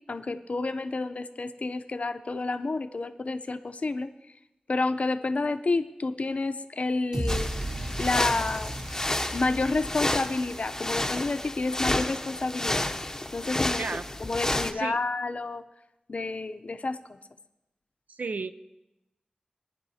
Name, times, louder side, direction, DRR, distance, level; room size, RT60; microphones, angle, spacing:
voice 1, 0.1-4.1 4.7-7.5 8.0-8.8 9.3-12.8 13.3-13.8 14.2-15.6 16.1-17.2, left 3 dB, 60° left, 9 dB, 0.6 m, -29 dB
sound 1, 7.1-11.2, right 1 dB, 35° right, 3.7 m, -35 dB
sound 2, 7.3-14.7, left 1 dB, 20° left, 0.7 m, -31 dB
voice 2, 18.1-18.5, right 4 dB, 80° right, 12 dB, 0.4 m, -33 dB
21.0 x 10.5 x 2.8 m, 0.94 s
wide cardioid pair, 85°, 3 cm